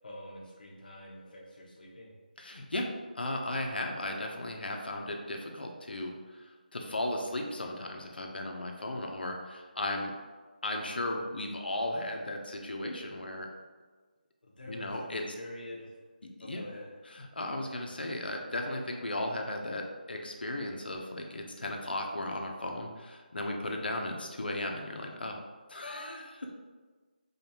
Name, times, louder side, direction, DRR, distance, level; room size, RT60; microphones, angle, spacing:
voice 1, 0.0-2.1 14.4-15.9 16.4-16.9, left 1 dB, 60° left, -3 dB, 1.0 m, -46 dB
voice 2, 2.4-10.1 10.6-13.5 14.7-15.2 16.4-16.6 17.1-25.4 25.7-26.6, left 1 dB, 80° left, 2 dB, 0.7 m, -36 dB
4.9 x 2.3 x 2.8 m, 1.4 s
figure-of-eight pair, 170°, 5 cm